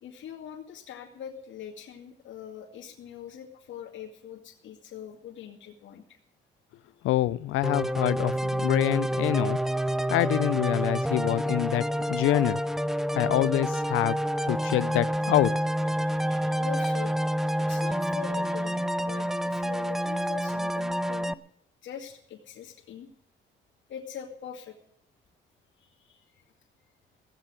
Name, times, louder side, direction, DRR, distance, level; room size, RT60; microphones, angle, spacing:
voice 1, 0.0-6.2 15.9-21.3 21.8-23.1 23.9-24.8 25.8-26.4, left 9 dB, 70° left, 0 dB, 2.3 m, -43 dB
voice 2, 7.0-9.6 10.1-12.6 13.1-14.2 14.5-15.5, left 15 dB, 90° left, 19 dB, 0.6 m, -26 dB
sound 1, 7.6-21.3, equal, ahead, 0.5 m, -28 dB
16.0 x 7.7 x 8.8 m, 0.64 s
cardioid pair, 90°, 20 cm